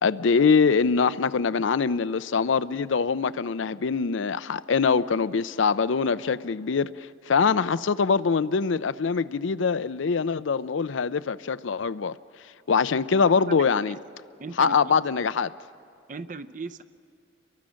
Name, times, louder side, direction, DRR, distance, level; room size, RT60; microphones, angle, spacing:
voice 1, 0.0-12.1 12.7-14.0 14.6-15.5, left 5 dB, 85° left, 0.5 m, -23 dB
voice 2, 14.4-14.9 16.1-16.8, right 3 dB, 40° right, 0.6 m, -37 dB
30.0 x 23.0 x 6.3 m
head